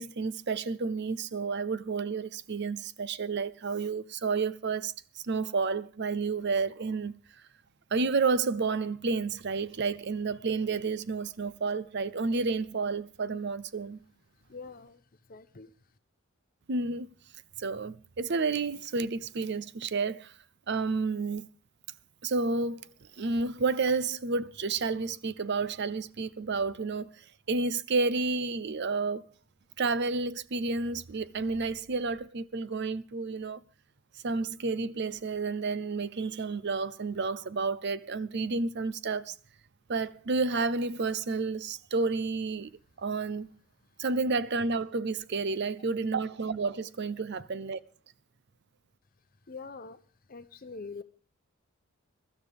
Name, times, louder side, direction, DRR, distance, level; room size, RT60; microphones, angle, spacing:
voice 1, 0.0-4.9 5.2-7.1 7.9-14.0 16.7-17.1 17.6-20.3 20.7-21.5 22.2-22.9 23.2-29.2 29.8-33.6 34.2-39.4 39.9-42.7 43.0-43.5 44.0-47.8, right 4 dB, 55° right, 0.6 m, -30 dB
voice 2, 14.5-15.7 49.5-50.0 50.3-51.0, left 4 dB, 45° left, 0.8 m, -44 dB
22.5 x 12.5 x 3.5 m
head